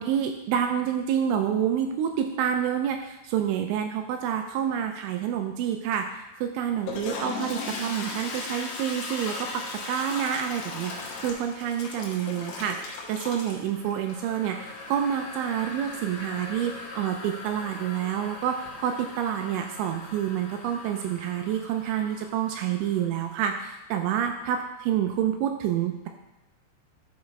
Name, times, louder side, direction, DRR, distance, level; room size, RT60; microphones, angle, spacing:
voice 1, 0.0-26.1, right 9 dB, 85° right, 5 dB, 2.7 m, -28 dB
Toilet flush, 6.7-23.5, left 3 dB, 75° left, 3.3 m, -39 dB
10.5 x 5.8 x 3.2 m, 0.92 s
omnidirectional pair, 5.9 m